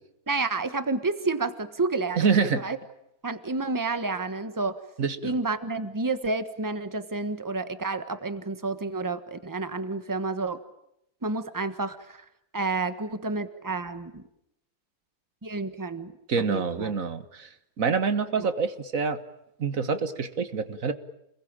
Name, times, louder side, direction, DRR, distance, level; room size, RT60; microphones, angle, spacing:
voice 1, 0.3-2.8 3.2-4.8 5.2-10.6 11.2-12.2 12.5-14.2 15.4-16.1 16.5-16.9 18.4-18.5, right 3 dB, 15° right, 10 dB, 1.3 m, -30 dB
voice 2, 2.2-2.6 5.0-5.3 16.3-19.2 19.6-20.9, right 5 dB, 55° right, 11 dB, 1.8 m, -26 dB
29.5 x 21.5 x 9.0 m, 0.80 s
omnidirectional pair, 1.7 m